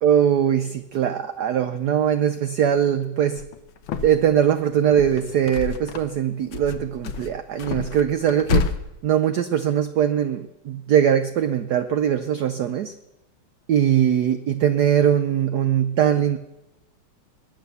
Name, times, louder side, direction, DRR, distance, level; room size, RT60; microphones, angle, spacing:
voice 1, 0.0-3.4 4.0-8.7 9.0-12.9 13.7-16.4, right 9 dB, 65° right, 10 dB, 1.0 m, -21 dB
sound 1, 3.4-4.4 4.8-6.2 6.5-8.8, left 5 dB, 70° left, 1.7 m, -28 dB
21.5 x 9.2 x 6.9 m, 0.94 s
omnidirectional pair, 2.4 m